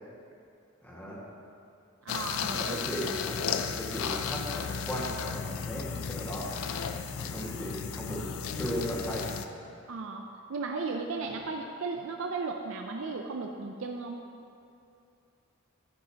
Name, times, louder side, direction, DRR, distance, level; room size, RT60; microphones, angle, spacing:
voice 1, 0.8-1.2 2.4-6.5 7.1-8.3 8.6-9.3 11.2-11.4, equal, 10° left, -7 dB, 1.7 m, -36 dB
voice 2, 2.0-2.8 9.9-10.2 10.5-14.2, right 4 dB, 65° right, 2 dB, 0.5 m, -35 dB
sound 1, 2.1-9.5, left 6 dB, 85° left, 0.4 m, -34 dB
10.5 x 7.6 x 2.9 m, 2.6 s
head